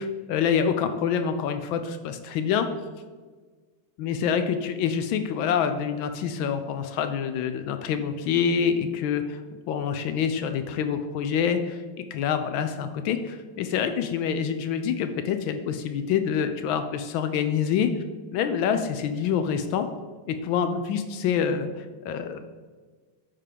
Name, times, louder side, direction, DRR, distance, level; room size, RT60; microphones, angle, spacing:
voice 1, 0.0-2.7 4.0-9.4 9.7-11.8 12.1-17.9 18.3-19.9 20.3-22.4, left 7 dB, 80° left, 8 dB, 1.3 m, -26 dB
9.9 x 3.8 x 4.9 m, 1.4 s
omnidirectional pair, 2.2 m